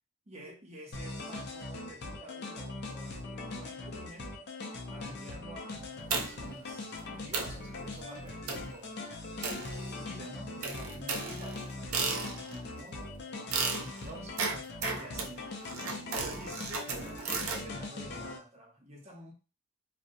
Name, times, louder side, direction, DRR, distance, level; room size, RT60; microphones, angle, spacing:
voice 1, 0.3-3.2 3.5-4.3 4.9-8.9 9.4-14.4 14.9-15.5 16.1-19.3, right 1 dB, 30° right, 0 dB, 0.7 m, -49 dB
sound 1, 0.9-18.4, left 2 dB, 50° left, 0.5 m, -41 dB
sound 2, 6.1-6.6 7.0-7.1 7.3-7.6 8.5-8.8 9.4-10.2 10.6-12.6 13.5-17.6, right 4 dB, 85° right, 0.5 m, -35 dB
2.6 x 2.0 x 2.6 m, 0.32 s
head